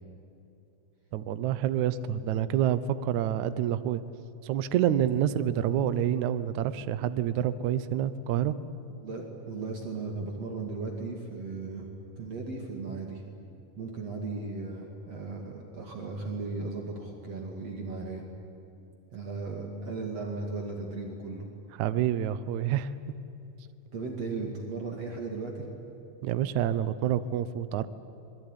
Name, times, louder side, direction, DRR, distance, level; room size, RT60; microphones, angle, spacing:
voice 1, 1.1-4.0 4.4-8.5 21.8-22.9 26.2-27.9, right 10 dB, 70° right, 13 dB, 1.9 m, -27 dB
voice 2, 9.0-11.9 12.2-13.2 13.8-18.2 19.1-21.5 23.9-25.7, right 3 dB, 45° right, 1 dB, 3.2 m, -36 dB
26.0 x 22.0 x 9.9 m, 2.8 s
omnidirectional pair, 4.3 m